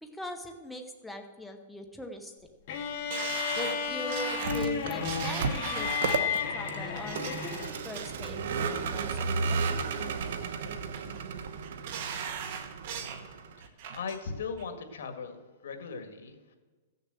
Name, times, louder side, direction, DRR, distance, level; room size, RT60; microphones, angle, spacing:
voice 1, 0.0-2.3 3.6-9.8, left 1 dB, ahead, 3 dB, 0.8 m, -42 dB
sound 1, 2.7-7.9, left 7 dB, 45° left, 1.5 m, -33 dB
sound 2, 3.1-6.3 6.9-7.3 7.7-8.3 8.7-9.2 9.6-10.3 10.7-11.2 11.6-13.2 13.6-14.2 14.6-14.7, right 7 dB, 45° right, 1.4 m, -39 dB
Vehicle, 4.3-13.7, right 5 dB, 70° right, 1.0 m, -34 dB
voice 2, 13.4-16.6, left 5 dB, 80° left, 7 dB, 1.8 m, -39 dB
14.5 x 6.7 x 7.6 m, 1.3 s
hypercardioid pair, 160°, 0 cm